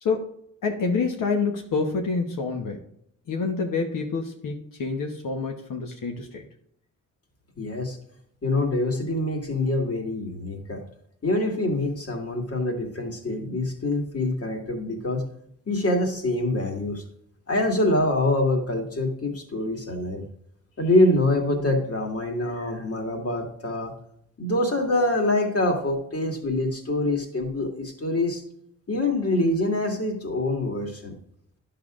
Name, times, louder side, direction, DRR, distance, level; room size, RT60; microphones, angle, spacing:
voice 1, 0.0-2.8 3.3-6.4, left 4 dB, 90° left, 2 dB, 1.1 m, -27 dB
voice 2, 7.6-8.0 8.4-10.8 11.2-15.2 15.7-17.0 17.5-20.2 20.8-23.9 24.4-28.4 28.9-31.1, left 2 dB, 50° left, 2 dB, 2.1 m, -25 dB
11.0 x 6.8 x 2.5 m, 0.71 s
cardioid pair, 80°, 32 cm